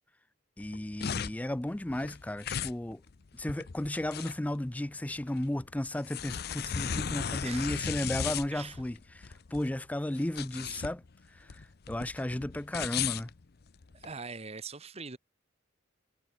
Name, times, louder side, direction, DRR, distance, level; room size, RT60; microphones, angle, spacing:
sound 1, 0.6-14.1, left 7 dB, 55° left, 0.6 m, -37 dB
voice 1, 0.6-3.0 3.3-13.3, left 1 dB, 10° left, 0.4 m, -34 dB
voice 2, 7.4-7.7 8.2-8.8 13.9-15.2, right 4 dB, 35° right, 1.2 m, -42 dB
head